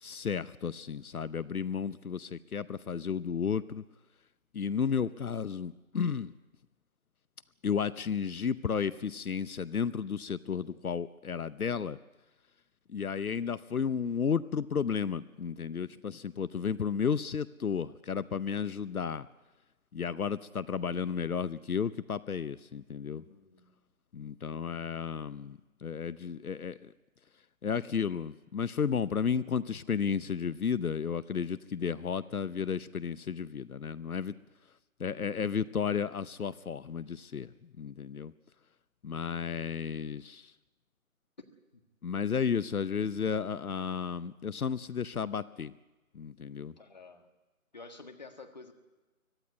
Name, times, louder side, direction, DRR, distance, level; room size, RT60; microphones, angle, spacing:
voice 1, 0.0-3.8 4.5-6.3 7.6-12.0 12.9-19.3 19.9-23.2 24.1-26.9 27.6-34.4 35.0-37.5 37.8-38.3 39.0-40.5 42.0-45.7 46.1-46.7, left 6 dB, 80° left, 17 dB, 0.8 m, -33 dB
voice 2, 23.1-23.7 41.7-41.8 46.8-47.3 47.7-48.7, left 3 dB, 30° left, 6 dB, 1.7 m, -50 dB
24.0 x 16.0 x 9.5 m, 1.1 s
figure-of-eight pair, 170°, 43 cm